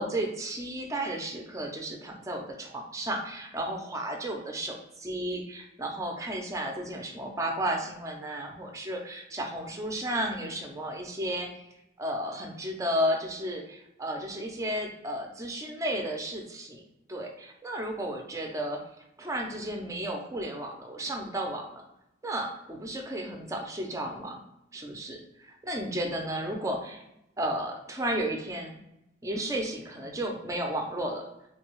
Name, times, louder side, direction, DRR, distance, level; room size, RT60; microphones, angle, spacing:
voice 1, 0.0-11.5 12.0-16.8 17.1-18.8 19.2-21.8 22.2-24.4 24.7-27.0 27.4-28.8 29.2-31.2, right 1 dB, 15° right, 2 dB, 0.5 m, -33 dB
3.3 x 2.3 x 3.0 m, 0.83 s
head